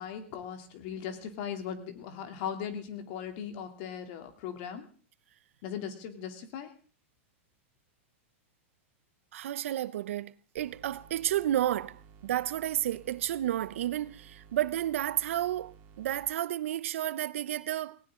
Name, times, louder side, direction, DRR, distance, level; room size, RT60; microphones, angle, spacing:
voice 1, 0.0-4.9 5.6-6.7, left 8 dB, 55° left, 3.0 m, -38 dB
voice 2, 9.3-18.0, right 12 dB, 80° right, 0.8 m, -31 dB
sound 1, 10.6-16.3, right 7 dB, 40° right, 3.0 m, -55 dB
18.5 x 18.0 x 3.8 m
supercardioid pair, 130°, 7 cm